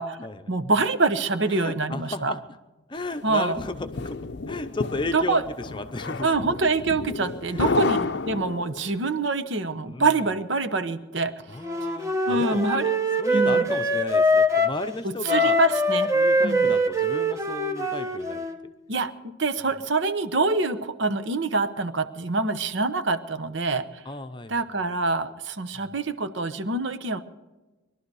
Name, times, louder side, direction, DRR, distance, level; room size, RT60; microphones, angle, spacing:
voice 1, 0.5-2.3 3.2-3.6 5.1-5.4 6.2-11.3 12.3-12.9 13.3-13.8 15.0-16.1 16.4-16.7 18.9-24.0 24.5-27.2, right 3 dB, 60° right, 10 dB, 1.0 m, -25 dB
voice 2, 1.5-2.4 2.9-4.2 4.5-6.3 7.5-8.4 9.8-10.1 11.5-12.7 13.2-15.6 16.1-18.7 24.1-24.7 25.7-25.9, left 2 dB, 25° left, 9 dB, 0.7 m, -34 dB
sound 1, 3.1-9.0, left 4 dB, 55° left, 0.6 m, -31 dB
Wind instrument woodwind instrument, 11.6-14.8 15.3-18.6, equal, 15° right, 0.9 m, -23 dB
21.5 x 12.0 x 4.8 m, 1.1 s
head